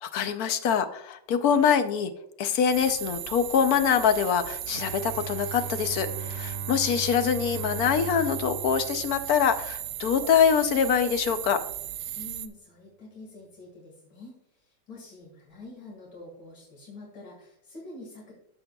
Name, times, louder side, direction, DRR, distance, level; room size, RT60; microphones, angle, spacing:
voice 1, 0.0-2.1 2.4-11.6, left 7 dB, 65° left, 9 dB, 1.1 m, -24 dB
sound 1, 2.7-12.5, right 12 dB, 75° right, 1.1 m, -36 dB
Bowed string instrument, 4.7-9.9, right 5 dB, 55° right, 1.0 m, -39 dB
voice 2, 12.2-14.4 14.6-18.3, left 2 dB, 90° left, -2 dB, 2.6 m, -46 dB
14.0 x 6.3 x 2.3 m, 0.76 s
omnidirectional pair, 1.8 m